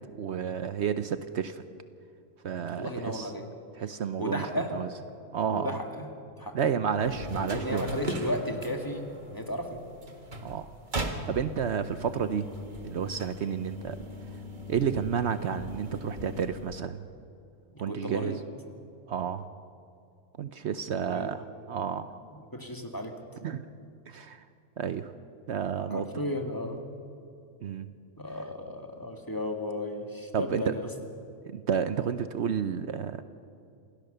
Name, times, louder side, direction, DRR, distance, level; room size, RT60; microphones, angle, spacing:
voice 1, 0.2-1.6 2.4-3.3 3.8-4.4 4.7-4.9 5.3-5.8 6.5-7.9 10.4-10.7 11.3-12.5 12.8-14.0 14.7-17.0 17.8-18.3 19.1-19.5 20.4-22.2 23.4-23.7 24.1-24.4 24.8-25.1 25.5-26.0 27.6-27.9 30.3-30.7 31.5-33.2, right 7 dB, 65° right, 11 dB, 1.0 m, -31 dB
voice 2, 2.7-3.5 4.2-4.8 5.5-6.1 6.4-6.7 7.0-9.9 17.7-18.4 20.9-21.3 22.3-23.2 23.8-23.9 25.8-26.8 28.2-30.9, left 1 dB, 15° left, 3 dB, 1.9 m, -34 dB
sound 1, 7.0-16.9, equal, 40° right, 1.8 m, -39 dB
27.5 x 17.0 x 6.7 m, 2.4 s
omnidirectional pair, 1.3 m